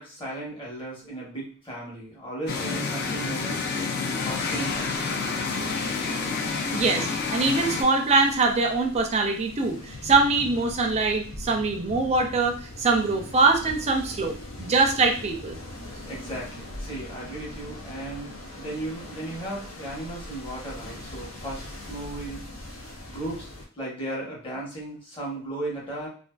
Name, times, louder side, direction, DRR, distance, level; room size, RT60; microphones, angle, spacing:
voice 1, 0.0-3.6 4.2-5.1 16.1-22.4 23.1-23.5 23.8-26.1, right 1 dB, 25° left, -5 dB, 1.0 m, -36 dB
sound 1, 2.5-7.8, left 4 dB, 50° left, 0.4 m, -28 dB
sound 2, 4.2-23.7, left 1 dB, 85° left, 0.7 m, -41 dB
voice 2, 6.7-15.6, right 3 dB, 30° right, 3 dB, 0.4 m, -23 dB
2.5 x 2.4 x 2.2 m, 0.42 s
head